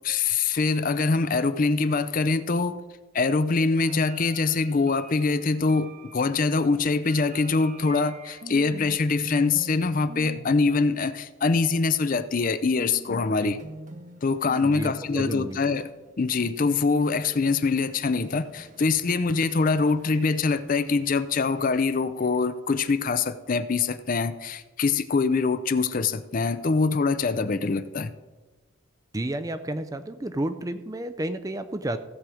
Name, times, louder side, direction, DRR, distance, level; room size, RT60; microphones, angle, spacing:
voice 1, 0.0-2.8 3.1-13.6 14.2-15.9 16.2-28.1, left 4 dB, 40° left, 12 dB, 0.5 m, -24 dB
sound 1, 3.8-9.0 9.2-9.8 10.1-10.8 12.8-21.7, right 1 dB, 35° right, 0.9 m, -46 dB
voice 2, 14.6-15.6 29.1-32.0, right 1 dB, 15° right, 10 dB, 0.4 m, -31 dB
15.5 x 7.4 x 4.9 m, 1.2 s
head